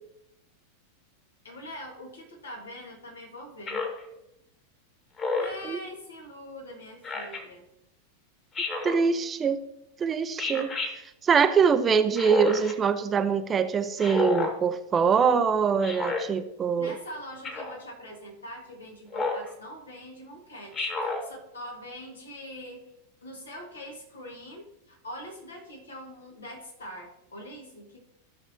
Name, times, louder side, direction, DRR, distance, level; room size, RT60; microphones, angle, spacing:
voice 1, 1.4-3.8 5.3-7.6 16.7-22.9 23.2-28.0, equal, 70° left, 0 dB, 2.1 m, -43 dB
Speech synthesizer, 3.7-4.0 5.2-5.6 7.0-7.4 8.5-9.0 10.4-10.9 12.1-12.7 14.0-14.5 15.8-16.2 17.4-17.8 19.1-19.5 20.7-21.2, left 3 dB, 25° left, 1.9 m, -30 dB
voice 2, 8.8-9.6 10.0-10.7 11.2-17.0, right 6 dB, 20° right, 10 dB, 0.6 m, -23 dB
15.0 x 5.9 x 3.1 m, 0.87 s
figure-of-eight pair, 90°, 0 cm